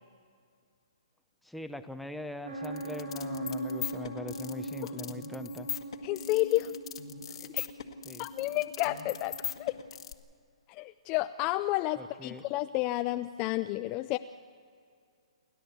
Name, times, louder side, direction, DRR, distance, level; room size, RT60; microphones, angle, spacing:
voice 1, 1.4-5.7 8.0-8.3 12.0-12.5, left 2 dB, ahead, 8 dB, 0.9 m, -42 dB
sound 1, 2.4-9.9, right 1 dB, 85° right, 5.1 m, -40 dB
sound 2, 2.6-10.1, left 9 dB, 65° left, 1.6 m, -40 dB
voice 2, 6.0-6.7 7.4-7.7 8.2-9.7 10.7-14.2, left 17 dB, 25° left, 9 dB, 0.5 m, -31 dB
29.5 x 12.5 x 8.3 m, 2.3 s
hypercardioid pair, 145°, 3 cm